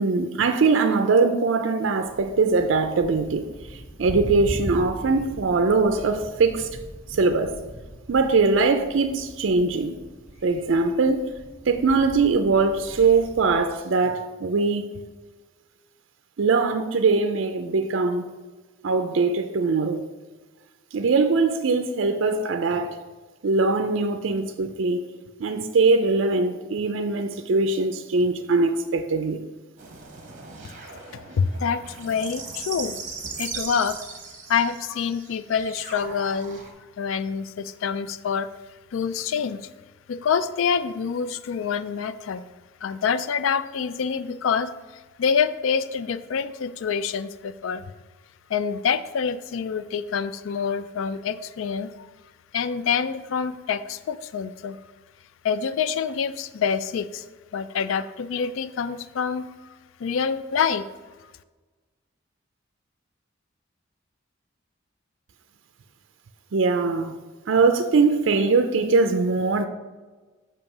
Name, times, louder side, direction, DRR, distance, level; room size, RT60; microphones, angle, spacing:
voice 1, 0.0-6.7 7.1-7.6 8.1-9.9 10.4-11.3 11.7-15.0 16.4-18.3 18.8-20.0 20.9-23.0 23.4-25.0 25.4-29.4 66.5-67.2 67.5-69.7, right 4 dB, 65° right, 0.4 m, -22 dB
Thunder, 2.0-13.7, equal, 40° left, 1.5 m, -39 dB
sound 1, 29.8-36.7, right 5 dB, 40° right, 0.9 m, -38 dB
voice 2, 31.1-33.0 33.4-34.0 34.5-36.6 37.0-38.5 38.9-39.7 40.1-42.4 42.8-47.8 48.5-52.1 52.5-54.8 55.4-57.2 57.5-60.9, left 6 dB, 75° left, 0.3 m, -26 dB
7.1 x 2.9 x 5.9 m
head